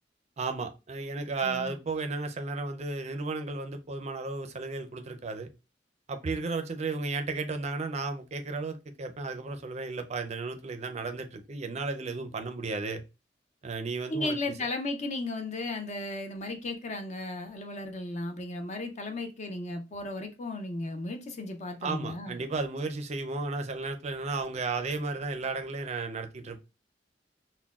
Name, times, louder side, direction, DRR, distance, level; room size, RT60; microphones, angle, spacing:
voice 1, 0.4-5.5 6.1-13.0 13.6-14.5 21.8-26.6, right 3 dB, 40° right, 0.4 m, -34 dB
voice 2, 1.4-1.7 14.1-22.4, left 2 dB, 40° left, 0.5 m, -35 dB
5.9 x 2.1 x 2.3 m
head